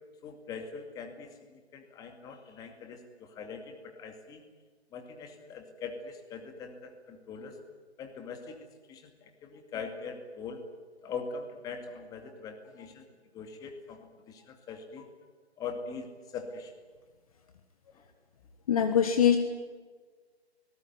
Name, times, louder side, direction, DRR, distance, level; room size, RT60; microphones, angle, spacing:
voice 1, 0.2-4.4 4.9-7.6 8.0-10.6 11.0-13.0 13.3-15.1 15.6-16.7 17.9-18.1, left 5 dB, 10° left, 5 dB, 2.3 m, -42 dB
voice 2, 18.7-19.4, left 8 dB, 35° left, 7 dB, 1.5 m, -22 dB
29.5 x 19.5 x 9.4 m, 1.5 s
figure-of-eight pair, 140°, 33 cm